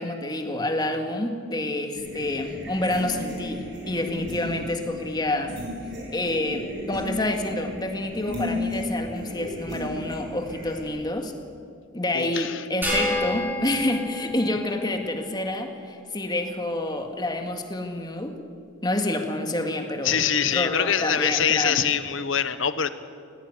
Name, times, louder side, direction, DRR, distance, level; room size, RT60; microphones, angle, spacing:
voice 1, 0.0-5.6 6.1-11.3 11.9-18.3 18.8-20.2 20.5-21.8, left 1 dB, 20° left, 5 dB, 1.9 m, -28 dB
sound 1, 1.9-10.8, left 1 dB, 55° right, 7.3 m, -35 dB
voice 2, 12.1-12.6 20.0-22.9, left 8 dB, 70° left, 13 dB, 1.1 m, -24 dB
sound 2, 12.8-15.4, left 1 dB, 10° right, 7.1 m, -30 dB
19.0 x 17.5 x 9.6 m, 2.3 s
head